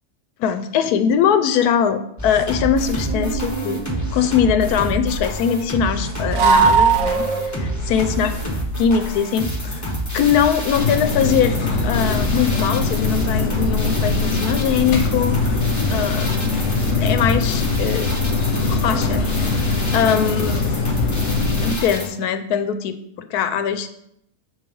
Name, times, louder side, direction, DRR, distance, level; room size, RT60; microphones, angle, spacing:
voice 1, 0.4-3.8 4.1-8.3 8.8-9.8 10.1-11.6 11.8-15.6 15.9-16.3 17.0-19.3 19.9-20.8 21.6-24.0, left 8 dB, 80° left, 9 dB, 1.1 m, -21 dB
sound 1, 2.2-22.1, equal, 15° left, 0.8 m, -27 dB
sound 2, 3.1-4.1 6.3-7.7, right 5 dB, 80° right, 0.4 m, -19 dB
sound 3, 10.7-21.8, left 4 dB, 55° left, 1.0 m, -22 dB
5.9 x 3.2 x 5.2 m, 0.74 s
omnidirectional pair, 1.6 m